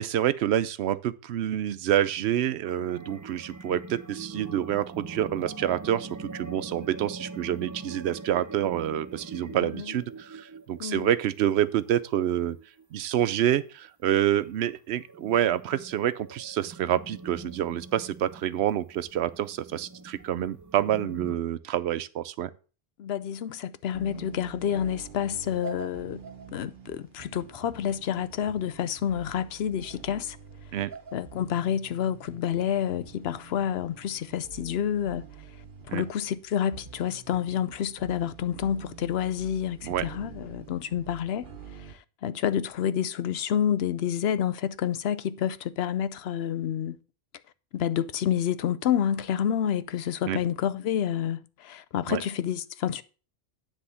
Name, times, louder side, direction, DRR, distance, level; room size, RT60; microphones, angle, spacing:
voice 1, 0.0-12.6 12.9-22.5 30.7-30.9 35.9-36.0 39.8-40.0 50.3-50.4 52.1-52.2, right 11 dB, 90° right, 0.9 m, -27 dB
sound 1, 2.6-13.3 13.8-13.9 14.3-14.5 14.9-21.4, right 3 dB, 25° right, 0.5 m, -43 dB
voice 2, 9.5-9.9 10.8-11.1 23.0-26.2 26.5-30.4 31.1-35.2 35.9-41.5 41.9-42.0 42.2-47.0 47.7-53.0, left 9 dB, 75° left, 0.8 m, -29 dB
sound 2, 23.9-41.9, right 6 dB, 55° right, 1.1 m, -46 dB
10.0 x 3.5 x 6.9 m
omnidirectional pair, 1.1 m